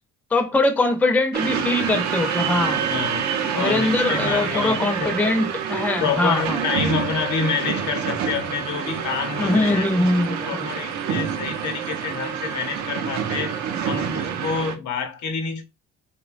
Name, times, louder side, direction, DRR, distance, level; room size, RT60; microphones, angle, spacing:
voice 1, 0.3-2.8 3.6-6.6 9.4-10.7, left 2 dB, 5° left, 0.4 m, -22 dB
sound 1, 1.3-14.8, right 7 dB, 70° right, 0.5 m, -27 dB
voice 2, 2.9-5.2 6.0-9.9 10.5-13.5 13.9-15.6, left 6 dB, 70° left, 0.7 m, -28 dB
2.9 x 2.1 x 2.4 m
cardioid pair, 90°, 30 cm